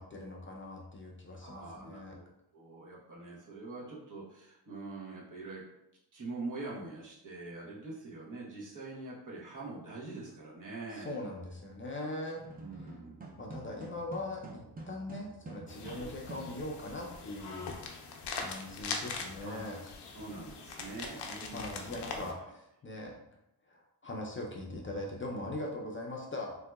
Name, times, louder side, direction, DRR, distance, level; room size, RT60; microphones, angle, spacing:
voice 1, 0.0-2.2 10.9-12.4 13.4-17.7 18.3-19.8 21.5-23.1 23.7-26.6, left 1 dB, 30° left, -1 dB, 0.5 m, -41 dB
voice 2, 1.4-2.2 2.5-5.6 6.1-11.2 12.6-13.3 15.9-16.1 19.4-19.6 20.1-21.9, right 3 dB, 50° right, -5 dB, 1.0 m, -44 dB
sound 1, 12.4-17.0, right 2 dB, 20° right, 0.5 m, -48 dB
sound 2, 15.7-22.3, left 4 dB, 80° left, 0.6 m, -42 dB
3.2 x 2.8 x 2.3 m, 0.83 s
cardioid pair, 90°, 40 cm